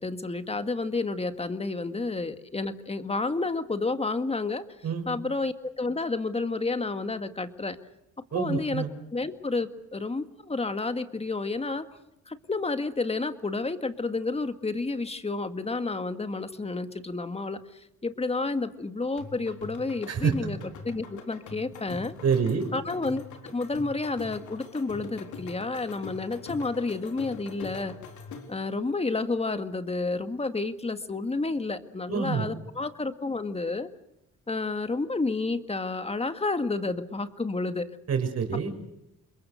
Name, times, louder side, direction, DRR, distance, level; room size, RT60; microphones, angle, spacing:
voice 1, 0.0-4.7 5.1-7.8 8.3-8.8 9.1-11.9 12.3-20.6 20.8-22.1 22.7-27.9 28.5-33.9 34.5-37.9, left 3 dB, 20° left, 10 dB, 1.9 m, -30 dB
voice 2, 8.3-8.9 20.1-20.3 22.2-22.6 32.1-32.5 38.1-38.7, right 6 dB, 55° right, 6 dB, 5.9 m, -26 dB
sound 1, 19.2-28.7, left 4 dB, 75° left, 4.1 m, -43 dB
28.5 x 22.0 x 6.5 m, 0.85 s
cardioid pair, 90°, 30 cm